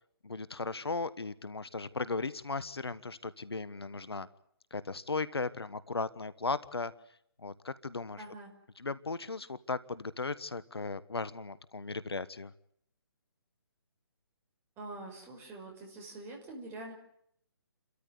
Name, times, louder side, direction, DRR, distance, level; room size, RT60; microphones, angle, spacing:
voice 1, 0.2-4.3 4.7-6.9 7.4-8.2 8.8-12.5, left 3 dB, 80° left, 16 dB, 1.3 m, -36 dB
voice 2, 8.2-8.5 14.8-16.9, right 2 dB, 15° right, 2 dB, 5.9 m, -45 dB
29.5 x 13.5 x 9.7 m, 0.70 s
figure-of-eight pair, 140°, 13 cm